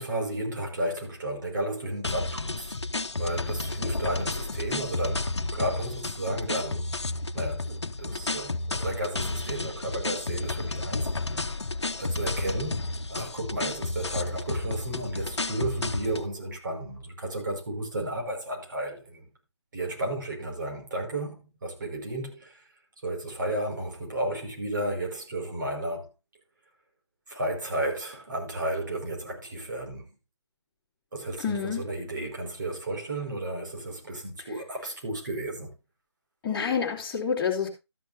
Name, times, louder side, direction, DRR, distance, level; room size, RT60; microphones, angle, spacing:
voice 1, 0.0-2.8 3.2-6.9 7.3-11.1 11.4-11.6 12.0-19.3 19.7-22.6 23.0-26.1 27.3-30.1 31.1-35.7, right 1 dB, 45° right, 5.5 m, -33 dB
sound 1, 2.0-16.3, left 2 dB, 75° left, 1.0 m, -31 dB
voice 2, 31.4-31.8 36.4-37.7, left 6 dB, 15° left, 3.4 m, -28 dB
13.5 x 11.0 x 2.8 m
figure-of-eight pair, 155°, 14 cm